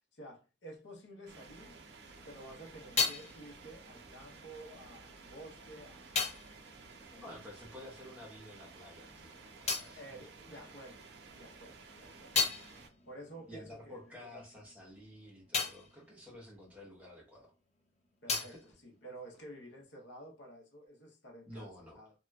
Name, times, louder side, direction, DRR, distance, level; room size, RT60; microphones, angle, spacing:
voice 1, 0.1-1.8 2.2-6.1 7.1-7.4 9.9-11.1 11.3-12.3 13.0-14.5 18.2-22.1, right 1 dB, 75° left, 0.9 m, -51 dB
sound 1, 1.3-12.9, right 4 dB, 60° right, 0.6 m, -54 dB
sound 2, 2.3-8.1 8.4-11.1 11.5-17.5 17.8-19.8, left 5 dB, 35° left, 0.6 m, -39 dB
voice 2, 7.1-10.7 13.5-17.5 18.3-18.6 21.5-22.0, left 1 dB, 10° right, 1.0 m, -51 dB
3.0 x 2.8 x 2.3 m
head